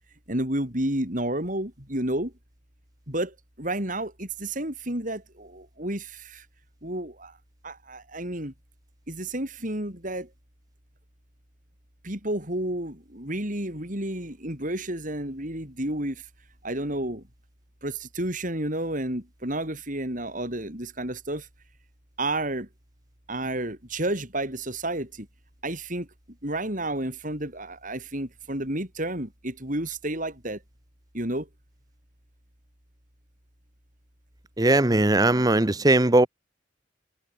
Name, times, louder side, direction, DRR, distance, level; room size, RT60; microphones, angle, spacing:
voice 1, 0.3-2.3 3.1-6.5 6.8-7.4 7.6-8.5 9.1-10.3 12.0-16.3 16.6-17.2 17.8-21.5 22.2-22.7 23.3-25.3 25.6-26.1 26.4-30.6 31.1-31.5, right 1 dB, 45° right, 7.5 m, -31 dB
voice 2, 34.6-36.3, right 2 dB, 20° right, 0.9 m, -19 dB
head